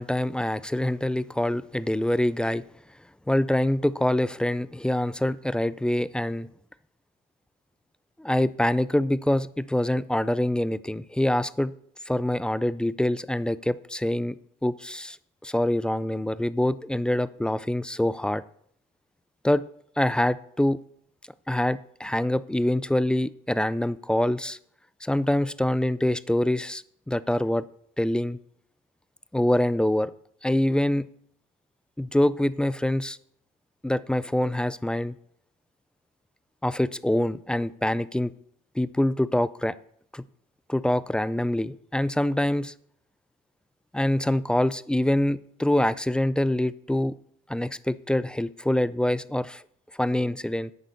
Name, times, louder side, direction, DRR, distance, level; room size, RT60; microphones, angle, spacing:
voice 1, 0.0-2.6 3.3-6.5 8.2-11.7 12.1-14.4 14.6-15.2 15.4-18.4 19.4-19.6 20.0-20.8 21.5-24.6 25.0-27.6 28.0-28.4 29.3-30.1 30.4-31.1 32.0-33.2 33.8-35.1 36.6-38.3 38.8-39.7 40.1-40.2 40.7-42.7 43.9-47.1 47.5-49.6 50.0-50.7, left 1 dB, 5° left, 17 dB, 0.4 m, -25 dB
10.5 x 8.6 x 5.3 m, 0.66 s
cardioid pair, 110°, 17 cm